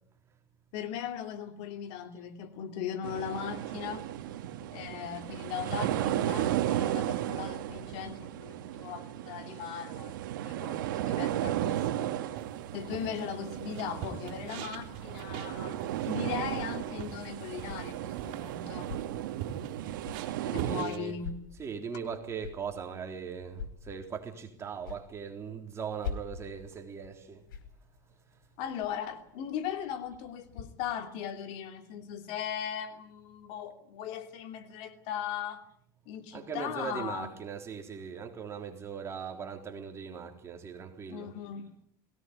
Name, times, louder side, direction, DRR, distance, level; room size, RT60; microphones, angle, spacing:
voice 1, 0.7-4.0 4.7-12.1 12.7-18.9 20.5-21.4 28.6-35.6 36.1-37.3 41.1-41.6, left 8 dB, 60° left, 2.9 m, -38 dB
sound 1, 3.0-20.8, right 12 dB, 85° right, 1.9 m, -34 dB
sound 2, 12.4-21.0, right 9 dB, 60° right, 3.8 m, -45 dB
sound 3, 16.6-30.6, left 6 dB, 90° left, 4.9 m, -47 dB
voice 2, 20.4-21.2 21.5-27.5 36.3-41.3, right 6 dB, 25° right, 3.7 m, -39 dB
20.5 x 18.0 x 9.5 m
supercardioid pair, 125°, 11 cm